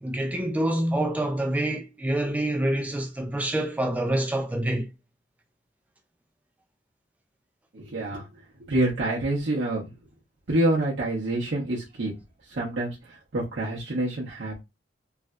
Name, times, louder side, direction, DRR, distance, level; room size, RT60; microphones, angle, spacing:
voice 1, 0.0-4.9, right 1 dB, 10° right, 0.3 m, -26 dB
voice 2, 7.7-8.2 8.6-9.9 10.5-12.2 12.5-14.6, right 1 dB, 75° right, 0.8 m, -27 dB
3.3 x 2.5 x 2.2 m
head